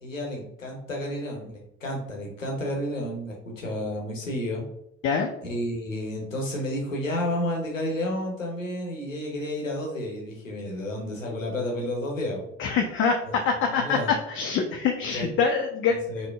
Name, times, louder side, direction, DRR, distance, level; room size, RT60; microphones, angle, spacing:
voice 1, 0.0-4.6 5.4-12.5 13.2-13.3 13.7-14.1 15.1-15.3 15.9-16.3, left 1 dB, 90° left, 0 dB, 0.7 m, -31 dB
voice 2, 12.6-14.0 14.3-16.0, left 5 dB, 35° left, 3 dB, 0.4 m, -25 dB
5.0 x 2.1 x 2.3 m, 0.77 s
figure-of-eight pair, 55°, 38 cm